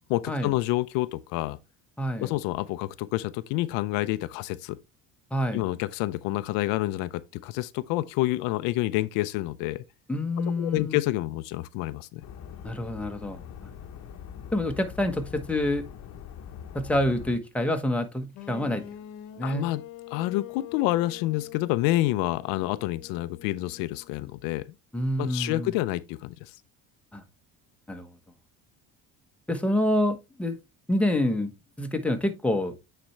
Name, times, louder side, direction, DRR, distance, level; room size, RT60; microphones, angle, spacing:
voice 1, 0.1-1.6 2.2-4.8 5.5-9.8 10.6-12.2 19.4-19.8 20.1-24.7 25.2-26.5, left 17 dB, 90° left, 0.6 m, -28 dB
voice 2, 2.0-2.3 5.3-5.6 10.1-11.0 12.6-13.4 14.5-15.8 16.7-18.8 19.4-19.7 24.9-25.7 27.1-27.2 27.9-28.1 29.5-30.6 30.9-31.5 31.8-32.7, left 1 dB, 5° left, 1.1 m, -27 dB
sound 1, 12.2-17.4, left 8 dB, 50° left, 1.0 m, -42 dB
sound 2, 18.3-24.2, left 13 dB, 75° left, 1.1 m, -44 dB
8.9 x 4.3 x 3.2 m
cardioid pair, 120°, 33 cm